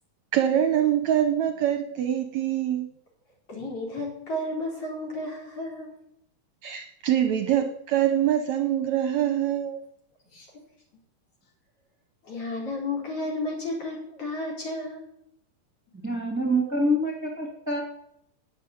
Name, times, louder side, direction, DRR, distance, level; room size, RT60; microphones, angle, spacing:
voice 1, 0.3-2.9 6.6-9.8, right 10 dB, 70° right, 8 dB, 1.9 m, -24 dB
voice 2, 3.5-5.9 10.3-10.5 12.2-15.1, left 2 dB, 45° left, -2 dB, 5.5 m, -32 dB
voice 3, 16.0-17.8, equal, 5° right, 1 dB, 2.0 m, -26 dB
11.0 x 9.1 x 9.9 m, 0.75 s
omnidirectional pair, 3.9 m